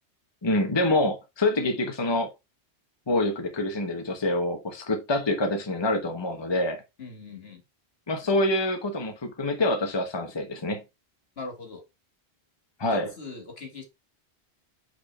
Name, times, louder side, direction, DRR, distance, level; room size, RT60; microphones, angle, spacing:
voice 1, 0.4-2.3 3.1-6.8 8.1-10.8 12.8-13.1, left 1 dB, 25° left, 1.1 m, -26 dB
voice 2, 7.0-7.6 11.4-11.8 12.9-13.8, left 3 dB, 65° left, 2.1 m, -40 dB
6.0 x 4.3 x 4.4 m
omnidirectional pair, 1.1 m